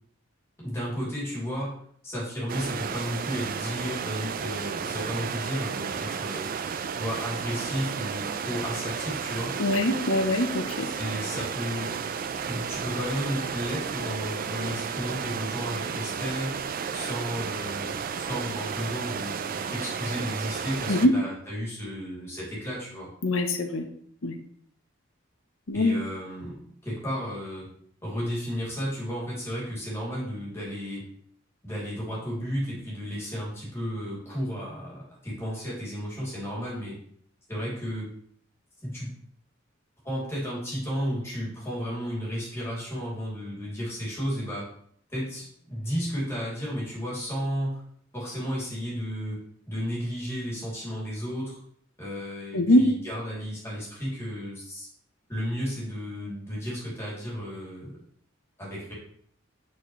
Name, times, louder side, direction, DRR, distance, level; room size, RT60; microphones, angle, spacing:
voice 1, 0.6-1.8 2.0-6.5 7.0-9.6 10.9-12.0 12.5-16.6 16.9-18.0 18.3-23.1 25.7-27.7 28.0-31.1 31.6-37.0 37.5-38.1 38.8-39.2 40.0-44.7 45.1-47.8 48.1-51.6 52.0-54.9 55.3-58.0 58.6-58.9, equal, 15° left, -6 dB, 2.7 m, -33 dB
sound 1, 2.5-21.1, right 6 dB, 45° right, 0.4 m, -33 dB
voice 2, 9.6-10.9 20.9-21.1 23.2-23.9 24.2-24.4 25.7-26.0 52.5-52.9, left 1 dB, 80° left, 6 dB, 0.9 m, -23 dB
8.7 x 4.3 x 3.1 m, 0.64 s
head